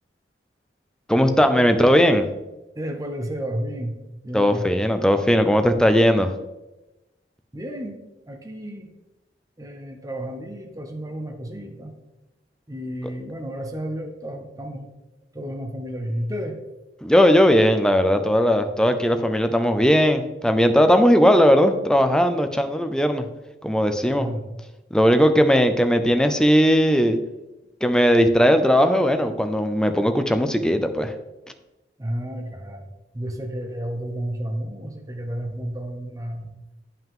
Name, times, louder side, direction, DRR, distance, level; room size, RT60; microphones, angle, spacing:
voice 1, 1.1-2.2 4.3-6.3 17.0-23.3 23.6-24.3 24.9-27.2 27.8-31.1, equal, 5° left, 7 dB, 0.5 m, -18 dB
voice 2, 2.7-4.7 7.5-8.0 8.3-8.9 9.6-11.9 12.7-14.9 15.3-16.6 24.2-24.4 32.0-32.9 33.1-36.6, equal, 20° right, 4 dB, 0.8 m, -31 dB
9.0 x 5.7 x 3.7 m, 1.0 s
head